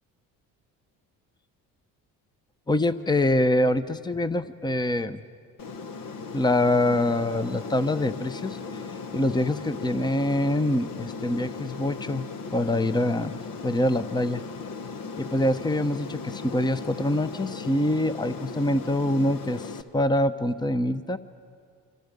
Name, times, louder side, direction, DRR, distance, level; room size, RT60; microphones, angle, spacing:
voice 1, 2.7-5.2 6.3-8.8 9.1-14.4 15.2-21.2, left 1 dB, 10° left, 12 dB, 0.9 m, -25 dB
Aircraft, 5.6-19.8, left 4 dB, 55° left, 1.3 m, -37 dB
26.5 x 26.0 x 5.3 m, 2.2 s
supercardioid pair, 70°, 39 cm